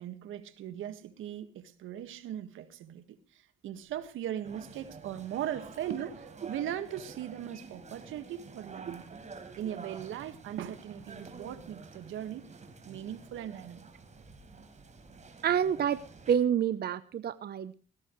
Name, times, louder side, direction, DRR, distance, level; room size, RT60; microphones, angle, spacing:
voice 1, 0.0-9.1 9.6-12.5 12.8-13.8, right 10 dB, 80° right, 1.7 m, -39 dB
sound 1, 4.4-16.4, right 4 dB, 35° right, 4.2 m, -49 dB
voice 2, 15.4-16.0 16.3-17.7, right 8 dB, 55° right, 0.8 m, -28 dB
18.5 x 17.0 x 3.2 m
cardioid pair, 90°, 20 cm